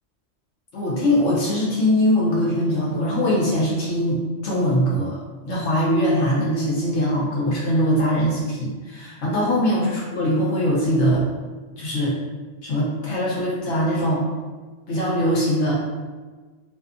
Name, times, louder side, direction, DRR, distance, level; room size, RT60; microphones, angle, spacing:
voice 1, 0.7-5.2 5.4-11.2 11.8-12.2 12.6-14.3 14.9-15.7, equal, 75° left, -6 dB, 1.0 m, -21 dB
2.6 x 2.3 x 2.4 m, 1.3 s
omnidirectional pair, 1.2 m